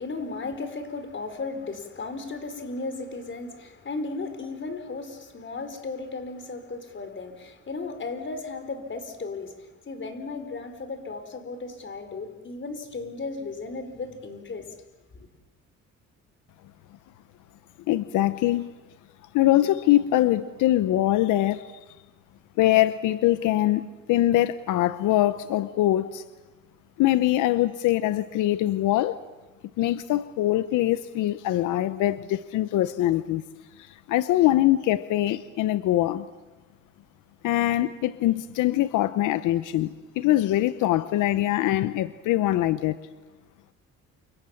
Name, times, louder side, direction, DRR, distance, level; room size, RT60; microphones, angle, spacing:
voice 1, 0.0-14.7 15.1-15.3, left 3 dB, 40° left, 8 dB, 4.6 m, -35 dB
voice 2, 17.9-18.7 19.3-21.8 22.6-26.2 27.0-29.2 29.8-33.4 33.8-36.3 37.4-43.0, left 14 dB, 90° left, 13 dB, 0.9 m, -23 dB
29.0 x 26.0 x 7.3 m, 1.1 s
cardioid pair, 90°, 30 cm